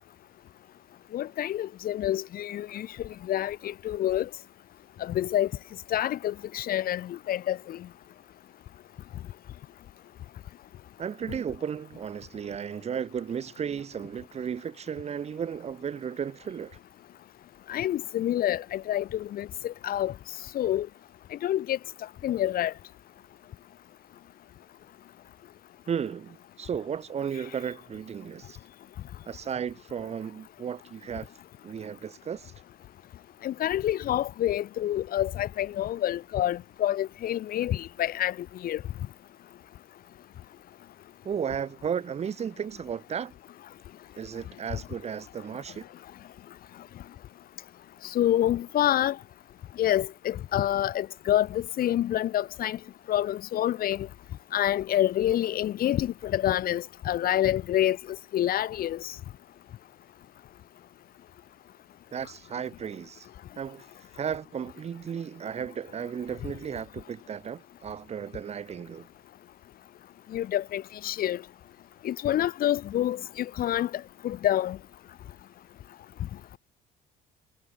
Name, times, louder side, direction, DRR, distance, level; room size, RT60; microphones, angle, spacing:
voice 1, 1.1-2.9 3.3-4.3 5.0-5.5 5.9-7.8 17.7-20.1 20.5-20.9 21.4-21.8 22.2-22.7 33.4-38.3 38.6-38.8 48.1-49.2 49.8-52.8 53.1-54.1 54.5-58.0 58.3-59.0 70.3-71.4 72.0-73.9 74.2-74.8, left 12 dB, 60° left, 1.4 m, -27 dB
voice 2, 11.0-16.8 25.9-28.6 29.3-31.3 31.6-32.5 41.2-43.3 44.2-45.9 62.1-63.3 63.5-63.9 64.1-69.1, right 7 dB, 40° right, 1.6 m, -34 dB
cardioid pair, 110°, 17 cm